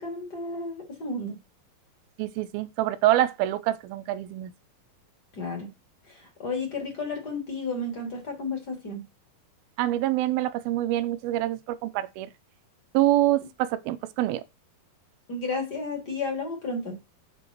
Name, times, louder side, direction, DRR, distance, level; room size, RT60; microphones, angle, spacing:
voice 1, 0.0-1.4 5.3-5.7 6.0-9.0 15.3-17.0, left 3 dB, 25° left, 3.5 m, -32 dB
voice 2, 2.2-4.5 9.8-12.3 12.9-14.4, right 14 dB, 90° right, 2.5 m, -25 dB
7.9 x 6.2 x 4.6 m
omnidirectional pair, 4.2 m